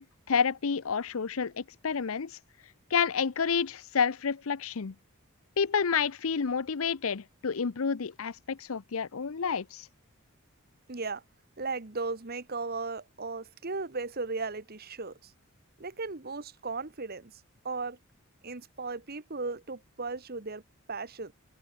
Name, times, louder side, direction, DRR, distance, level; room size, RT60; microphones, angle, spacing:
voice 1, 0.0-2.4 2.9-4.9 5.6-9.9, left 6 dB, 70° left, 0.6 m, -29 dB
voice 2, 10.9-11.2 11.6-15.3 15.8-17.3 17.6-18.0 18.4-20.6 20.9-21.3, right 3 dB, 45° right, 1.3 m, -36 dB
open air
head